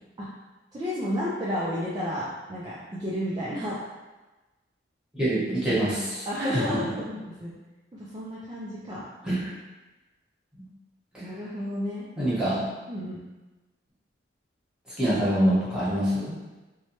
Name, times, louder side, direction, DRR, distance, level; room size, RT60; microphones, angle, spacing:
voice 1, 0.7-3.8 6.3-7.5 7.9-9.1 11.2-12.3 12.9-13.2, equal, 25° right, -8 dB, 0.4 m, -31 dB
voice 2, 5.1-6.8 9.2-9.5 12.2-12.6 15.0-16.4, right 1 dB, 5° right, -11 dB, 1.1 m, -25 dB
3.0 x 2.2 x 2.8 m, 1.1 s
head